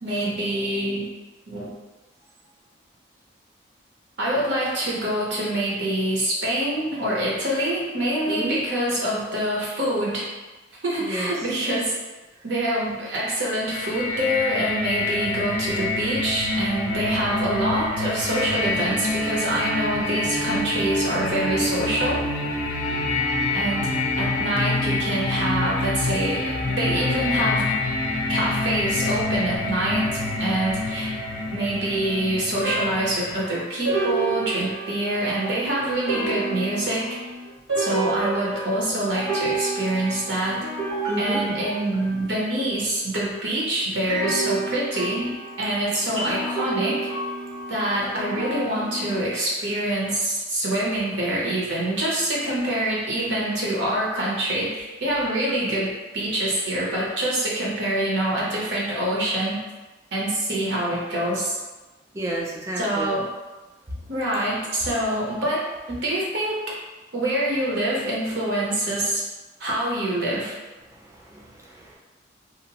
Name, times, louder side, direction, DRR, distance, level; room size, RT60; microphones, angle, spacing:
voice 1, 0.0-1.1 1.5-1.7 4.2-10.3 10.8-11.9 12.4-22.2 23.5-23.9 24.2-27.7 28.3-31.1 31.5-37.2 37.8-40.6 41.2-47.0 47.7-59.6 60.1-61.6 62.8-63.3 64.1-66.6 67.1-69.3 69.6-70.6, right 1 dB, 60° right, -5 dB, 0.7 m, -25 dB
voice 2, 11.0-11.3 41.0-41.4 62.1-63.1 70.9-72.0, right 1 dB, 15° right, -3 dB, 0.3 m, -31 dB
sound 1, 13.7-33.4, left 2 dB, 85° left, 0.4 m, -26 dB
sound 2, 29.8-31.3 32.6-42.6 44.0-49.2, right 2 dB, 85° right, 1.3 m, -30 dB
2.8 x 2.0 x 2.8 m, 1.2 s
head